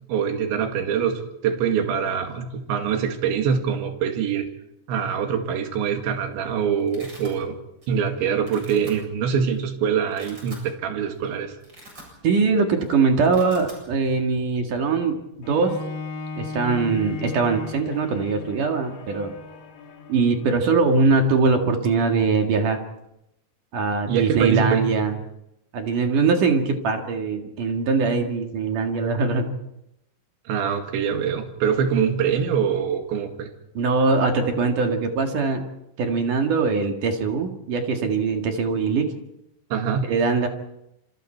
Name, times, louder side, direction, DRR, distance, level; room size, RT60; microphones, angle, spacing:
voice 1, 0.1-4.5 4.9-7.6 7.9-11.5 24.1-25.0 30.5-33.5 39.7-40.1, right 7 dB, 80° right, 5 dB, 4.4 m, -24 dB
Domestic sounds home sounds, 6.1-6.2 6.5-7.3 7.8-8.1 8.4-8.9 9.5-9.6 10.0-10.7 11.1-11.2 11.5-12.5 12.7-12.9 13.1-13.8, right 1 dB, 20° right, 8.4 m, -45 dB
voice 2, 12.2-15.2 15.5-15.8 16.4-19.3 20.1-22.8 23.7-25.2 25.7-29.6 33.7-35.7 36.0-39.1 40.1-40.5, right 4 dB, 55° right, 3 dB, 3.0 m, -22 dB
Bowed string instrument, 15.4-21.1 21.7-21.8, left 4 dB, 75° left, 5.2 m, -36 dB
27.5 x 27.0 x 4.5 m, 0.84 s
omnidirectional pair, 5.2 m